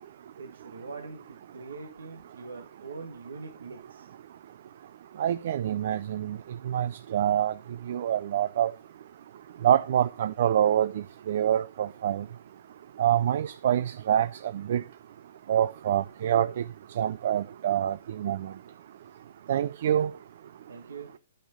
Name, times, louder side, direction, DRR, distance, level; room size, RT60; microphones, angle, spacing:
voice 1, 0.4-4.1 20.7-21.1, right 4 dB, 85° right, 1.4 m, -43 dB
voice 2, 5.2-6.4 6.6-7.5 7.9-8.7 9.6-12.3 13.0-14.3 14.5-14.8 15.5-16.6 17.0-18.5 19.5-20.1, right 10 dB, 60° right, 0.3 m, -26 dB
9.3 x 6.5 x 3.6 m
hypercardioid pair, 140°, 0 cm